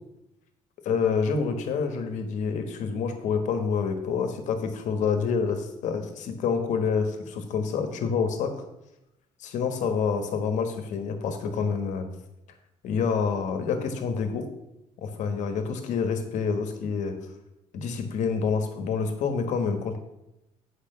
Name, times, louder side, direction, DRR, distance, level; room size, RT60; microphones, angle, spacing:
voice 1, 0.8-8.5 9.4-12.1 12.8-14.4 15.0-17.1 17.7-20.0, left 5 dB, 65° left, 7 dB, 1.4 m, -27 dB
8.7 x 4.9 x 6.7 m, 0.90 s
cardioid pair, 155°, 13 cm